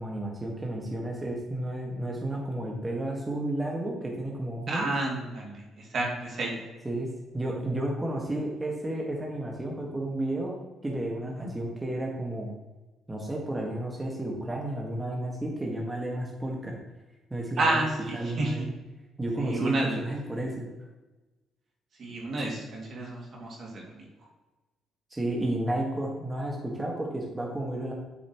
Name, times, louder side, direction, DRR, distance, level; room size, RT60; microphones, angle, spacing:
voice 1, 0.0-4.9 6.8-10.5 10.8-12.5 13.1-16.8 17.3-17.9 18.1-18.7 19.2-20.6 25.1-27.9, right 1 dB, 20° right, -1 dB, 1.8 m, -32 dB
voice 2, 4.7-6.7 11.2-11.3 17.6-18.7 19.4-20.0 22.0-24.1, right 2 dB, 55° right, -1 dB, 2.6 m, -31 dB
8.3 x 7.1 x 3.1 m, 1.2 s
supercardioid pair, 65°, 0 cm